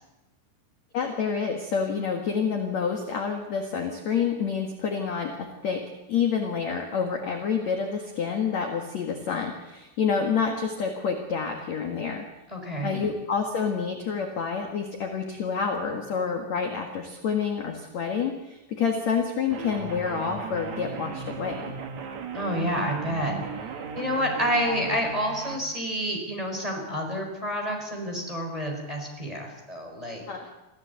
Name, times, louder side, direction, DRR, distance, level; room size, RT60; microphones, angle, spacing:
voice 1, 0.9-5.8 6.1-12.3 12.8-21.7 24.6-24.8 30.3-30.5, left 6 dB, 55° left, 3 dB, 2.1 m, -28 dB
voice 2, 12.5-13.0 22.3-23.4 23.9-30.2, equal, 10° right, 1 dB, 4.1 m, -29 dB
sound 1, 19.5-25.6, right 5 dB, 55° right, 2.3 m, -37 dB
25.0 x 15.5 x 8.2 m, 0.99 s
omnidirectional pair, 5.7 m